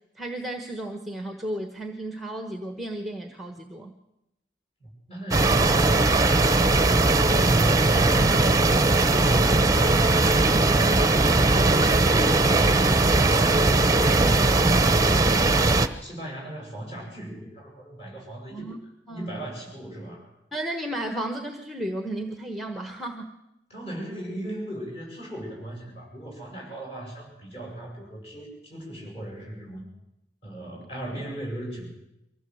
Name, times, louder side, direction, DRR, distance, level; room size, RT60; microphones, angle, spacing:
voice 1, 0.2-3.9 8.1-8.5 10.4-10.8 14.0-14.6 18.5-18.8 19.1-19.4 20.5-23.3, right 1 dB, ahead, 6 dB, 1.2 m, -34 dB
voice 2, 4.8-7.2 10.3-11.5 11.8-13.4 13.9-15.7 16.0-18.7 19.1-20.3 23.7-29.9 30.4-31.9, right 1 dB, 30° left, 0 dB, 7.9 m, -37 dB
sound 1, 5.3-15.9, right 2 dB, 20° right, 0.9 m, -19 dB
24.0 x 16.0 x 7.8 m, 0.88 s
head